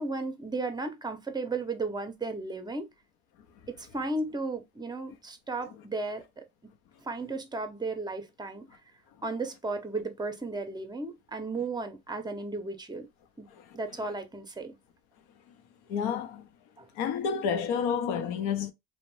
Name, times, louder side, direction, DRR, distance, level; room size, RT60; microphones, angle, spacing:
voice 1, 0.0-2.9 3.7-6.4 7.0-8.7 9.2-13.1 13.4-13.5 13.7-14.8 16.8-16.9, right 3 dB, 10° right, 0.6 m, -34 dB
voice 2, 15.9-16.5 16.9-18.7, left 7 dB, 80° left, 0.7 m, -30 dB
2.5 x 2.1 x 3.0 m
supercardioid pair, 80°, 37 cm